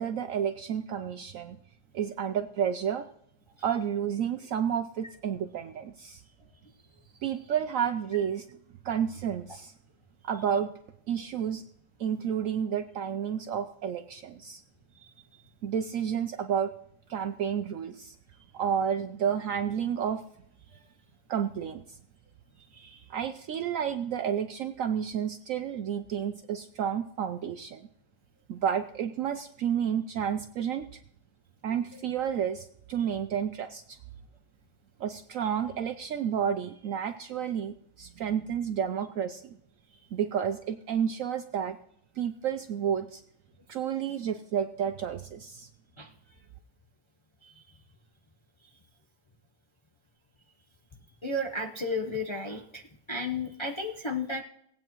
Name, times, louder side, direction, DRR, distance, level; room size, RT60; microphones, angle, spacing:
voice 1, 0.0-1.6 1.9-3.1 3.6-6.2 7.2-8.6 8.8-9.7 10.2-10.7 11.1-11.6 12.0-14.6 15.6-16.7 17.1-18.2 18.5-20.2 21.3-22.0 22.7-27.9 28.5-31.0 31.6-34.0 35.0-39.6 40.1-41.8 42.2-43.2 43.7-45.7, right 8 dB, 70° right, 8 dB, 0.8 m, -31 dB
voice 2, 51.2-52.8 53.1-54.4, left 2 dB, 30° left, 1 dB, 0.6 m, -32 dB
18.5 x 8.6 x 3.0 m, 0.73 s
omnidirectional pair, 1.8 m